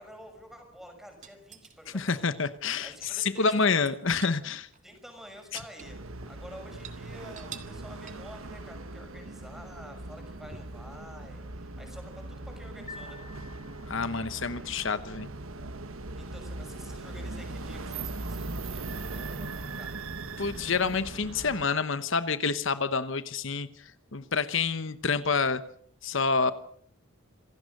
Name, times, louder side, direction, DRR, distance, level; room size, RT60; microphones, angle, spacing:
voice 1, 0.0-2.2 2.8-3.9 4.8-6.0 6.3-13.2 16.2-19.9, equal, ahead, 4 dB, 6.1 m, -49 dB
sound 1, 1.2-2.0 2.9-4.4 4.7-4.8 5.2-6.4 6.7-7.0 7.4-7.8 8.1-8.4 10.5-10.9 12.5-12.6, right 7 dB, 35° right, 1.9 m, -47 dB
voice 2, 1.9-4.7 13.9-15.3 20.4-25.6 26.0-26.5, left 4 dB, 65° left, 12 dB, 1.0 m, -28 dB
sound 2, 5.8-21.7, right 2 dB, 85° right, 1.5 m, -40 dB
sound 3, 12.9-14.3, left 4 dB, 35° left, 2.4 m, -48 dB
27.0 x 17.0 x 6.6 m, 0.64 s
head